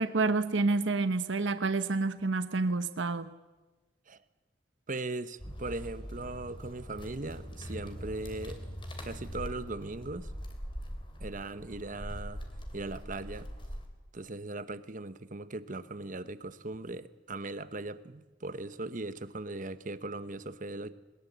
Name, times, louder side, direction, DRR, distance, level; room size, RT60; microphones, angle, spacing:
voice 1, 0.0-3.3, right 3 dB, 75° right, 1.0 m, -28 dB
voice 2, 4.9-8.6 9.0-10.3 11.2-12.4 12.7-13.5 14.1-20.9, right 2 dB, 45° right, 1.0 m, -39 dB
sound 1, 5.4-13.9, equal, 25° left, 3.2 m, -42 dB
22.0 x 20.5 x 8.1 m
head